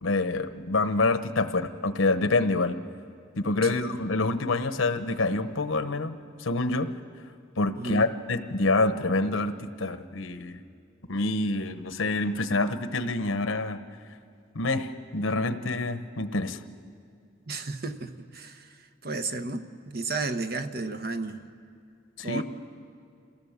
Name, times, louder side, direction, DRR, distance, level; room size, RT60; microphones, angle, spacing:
voice 1, 0.0-2.8 3.4-6.9 7.6-10.6 11.1-13.8 14.5-16.6 22.2-22.4, left 2 dB, 85° left, 10 dB, 1.0 m, -27 dB
voice 2, 7.8-8.1 17.5-21.4 22.2-22.4, right 3 dB, 50° right, 8 dB, 1.0 m, -33 dB
27.5 x 16.5 x 7.4 m, 2.4 s
head